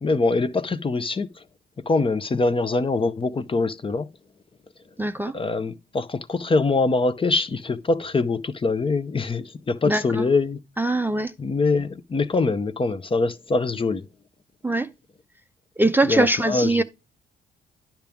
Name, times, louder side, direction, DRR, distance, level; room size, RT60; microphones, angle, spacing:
voice 1, 0.0-1.3 1.9-4.1 5.3-10.6 11.4-14.0 16.1-16.8, left 3 dB, 25° left, 0.7 m, -23 dB
voice 2, 5.0-5.3 9.8-10.3 10.8-11.3 14.6-14.9 15.8-16.8, right 2 dB, 10° right, 0.5 m, -22 dB
10.5 x 5.8 x 3.5 m
cardioid pair, 90°, 20 cm